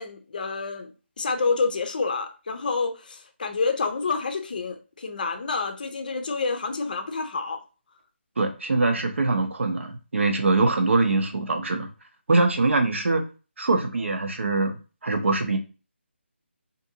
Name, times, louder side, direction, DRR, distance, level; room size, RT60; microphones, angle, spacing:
voice 1, 0.0-7.6, left 4 dB, 45° left, 0.5 m, -28 dB
voice 2, 8.4-11.9 12.3-13.2 13.6-14.8 15.0-15.6, right 3 dB, 75° right, 0.7 m, -23 dB
2.6 x 2.5 x 2.7 m
hypercardioid pair, 170°, 7 cm